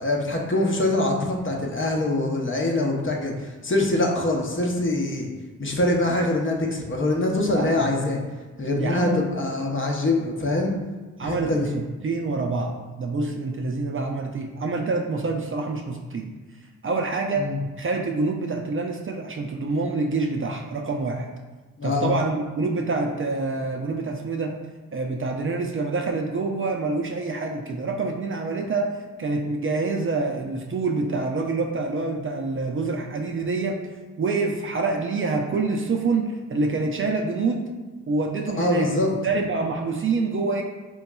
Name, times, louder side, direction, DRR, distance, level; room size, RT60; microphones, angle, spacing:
voice 1, 0.0-5.3 5.6-8.2 8.6-10.7 11.2-11.7 17.4-17.6 21.8-22.1 38.6-39.1, left 2 dB, 35° left, 0 dB, 0.7 m, -24 dB
voice 2, 7.5-7.9 8.7-9.2 11.2-16.3 16.8-17.5 17.8-21.3 21.8-24.5 24.9-33.8 34.2-37.6 38.1-40.6, right 3 dB, 40° right, 2 dB, 0.4 m, -26 dB
3.7 x 2.9 x 2.2 m, 1.3 s
cardioid pair, 45°, 34 cm